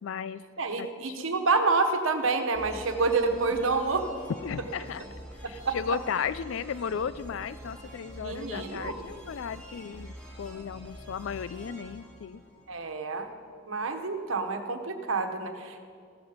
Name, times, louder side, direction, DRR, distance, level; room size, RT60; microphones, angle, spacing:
voice 1, 0.0-0.4 0.8-1.3 3.5-3.6 4.4-5.0 5.5-12.4, left 7 dB, 75° left, 17 dB, 0.4 m, -35 dB
voice 2, 0.6-4.1 5.4-5.8 8.2-8.9 12.7-13.3 13.7-15.8, right 4 dB, 85° right, 6 dB, 1.2 m, -28 dB
sound 1, 2.5-13.1, equal, 5° left, 2.5 m, -46 dB
15.0 x 12.5 x 5.1 m, 2.3 s
head